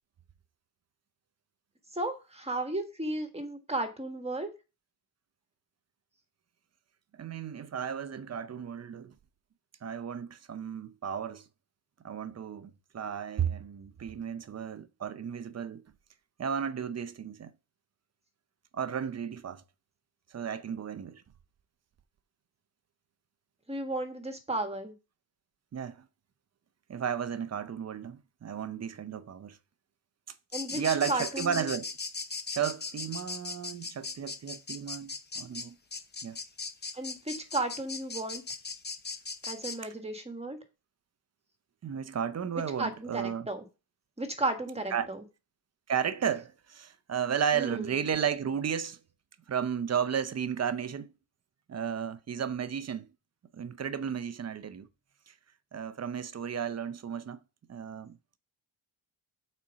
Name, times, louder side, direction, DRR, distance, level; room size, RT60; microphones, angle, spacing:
voice 1, 1.9-4.5 23.7-24.9 30.5-30.8 31.1-31.7 36.9-38.4 39.5-40.6 42.8-43.6 44.2-45.2 47.5-47.9, right 2 dB, 15° right, 1.6 m, -34 dB
voice 2, 7.1-9.1 9.8-11.5 12.0-15.8 16.4-17.5 18.7-19.6 20.3-21.2 25.7-26.1 26.9-29.6 30.7-31.9 32.5-35.8 36.2-36.4 41.8-43.5 44.9-45.1 45.9-49.0 49.5-51.1 51.7-53.1 53.5-54.9 55.3-55.4 55.7-57.4 57.7-58.2, right 8 dB, 35° right, 0.7 m, -33 dB
sound 1, 30.5-39.8, left 4 dB, 20° left, 0.8 m, -38 dB
8.6 x 4.4 x 6.3 m
wide cardioid pair, 150°, 46 cm